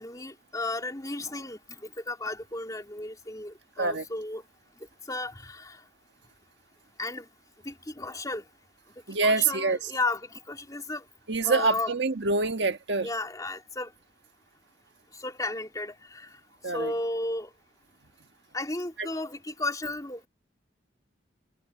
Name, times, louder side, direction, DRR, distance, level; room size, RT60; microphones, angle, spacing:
voice 1, 0.0-4.4 5.1-5.8 7.0-7.3 7.6-8.4 9.2-11.0 11.4-11.9 13.0-13.9 15.1-16.3 16.7-17.5 18.5-20.3, left 2 dB, 20° left, 3.1 m, -34 dB
voice 2, 9.1-9.9 11.3-13.1 16.6-16.9 19.0-19.1, right 3 dB, 80° right, 1.5 m, -26 dB
head